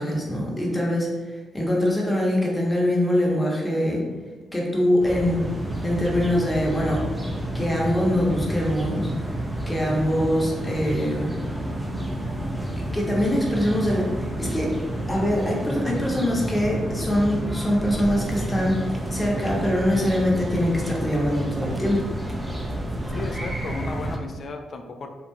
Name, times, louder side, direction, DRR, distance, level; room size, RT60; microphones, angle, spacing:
voice 1, 0.0-4.0 4.5-5.4 5.8-7.1 7.5-9.1 9.7-11.4 12.9-14.7 15.1-22.0, left 1 dB, 20° left, -3 dB, 0.9 m, -23 dB
sound 1, 5.0-24.2, right 1 dB, 15° right, 0.5 m, -30 dB
voice 2, 23.1-25.1, left 3 dB, 55° left, 5 dB, 0.3 m, -34 dB
3.1 x 2.3 x 2.2 m, 1.3 s
hypercardioid pair, 40°, 0 cm